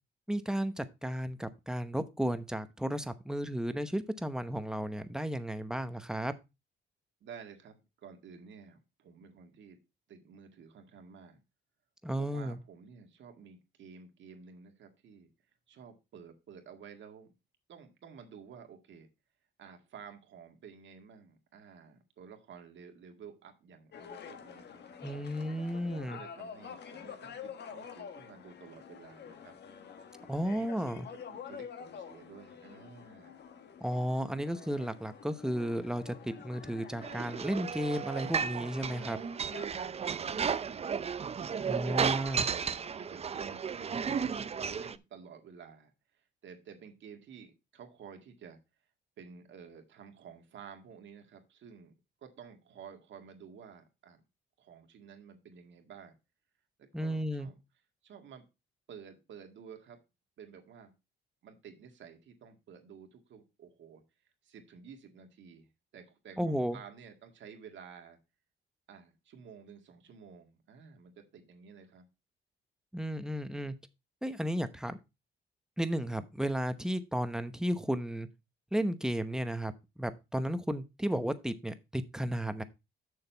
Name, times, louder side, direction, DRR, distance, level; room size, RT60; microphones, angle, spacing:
voice 1, 0.3-6.3 12.0-12.6 25.0-26.2 30.3-31.1 33.8-39.2 41.6-42.4 56.9-57.5 66.4-66.8 72.9-73.7 74.2-75.0 75.8-78.3 78.7-79.7 80.0-82.6, equal, 5° right, 0.9 m, -33 dB
voice 2, 7.2-9.8 10.1-11.4 12.2-15.3 15.7-17.3 17.7-19.1 19.6-24.8 25.6-29.5 30.2-33.4 34.3-34.4 39.7-40.8 41.5-44.1 44.6-48.6 49.2-51.9 52.2-54.2 54.6-56.1 56.8-57.6 58.0-58.4 58.9-60.0 60.4-60.9 61.4-64.0 64.4-68.2 68.9-72.0, right 6 dB, 70° right, 1.9 m, -52 dB
sound 1, 23.9-39.7, left 7 dB, 60° left, 1.2 m, -48 dB
sound 2, 37.0-45.0, right 6 dB, 30° right, 0.5 m, -34 dB
6.9 x 6.5 x 4.4 m
cardioid pair, 90°, 20 cm